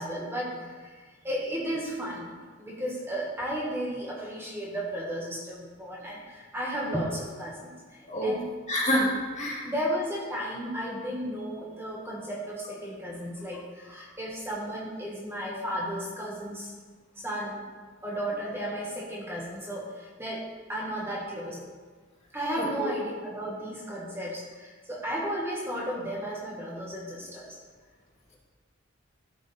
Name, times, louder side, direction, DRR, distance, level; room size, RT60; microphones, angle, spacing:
voice 1, 0.0-8.5 9.6-16.7 17.2-17.6 18.0-21.6 22.3-27.6, equal, 10° right, -4 dB, 1.5 m, -34 dB
voice 2, 8.0-8.4 8.7-9.7 22.6-22.9, equal, 35° left, -4 dB, 2.1 m, -27 dB
14.0 x 5.0 x 4.2 m, 1.5 s
head